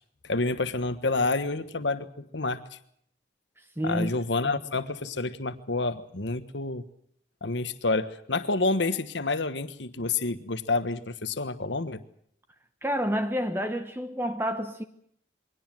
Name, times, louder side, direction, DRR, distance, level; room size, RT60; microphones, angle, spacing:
voice 1, 0.2-2.8 3.8-6.8 7.4-12.0, left 3 dB, 75° left, 1.3 m, -29 dB
voice 2, 3.6-4.1 4.4-4.5 12.8-14.8, equal, 10° right, 1.0 m, -29 dB
23.0 x 18.0 x 7.7 m
head